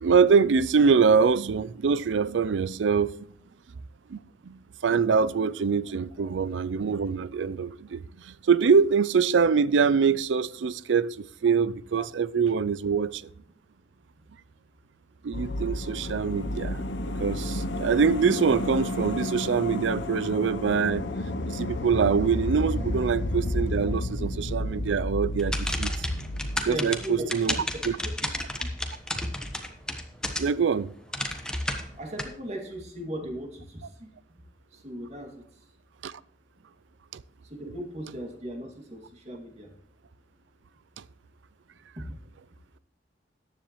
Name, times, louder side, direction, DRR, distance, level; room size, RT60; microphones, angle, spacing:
voice 1, 0.0-3.1 4.1-13.2 15.2-16.8 17.2-21.0 21.5-25.9 26.6-27.5 27.8-28.0 30.4-30.9 36.0-36.1 37.1-37.2, right 5 dB, 80° right, 0.4 m, -24 dB
sound 1, 15.3-27.7 28.0-28.1, left 1 dB, 75° left, 0.8 m, -31 dB
sound 2, 25.4-30.7 31.1-32.2, left 1 dB, 5° left, 1.1 m, -31 dB
voice 2, 26.6-27.2 27.7-27.8 32.0-34.1 34.8-35.3 37.5-39.7 42.0-42.1, right 1 dB, 35° right, 2.2 m, -37 dB
14.5 x 10.0 x 3.1 m
head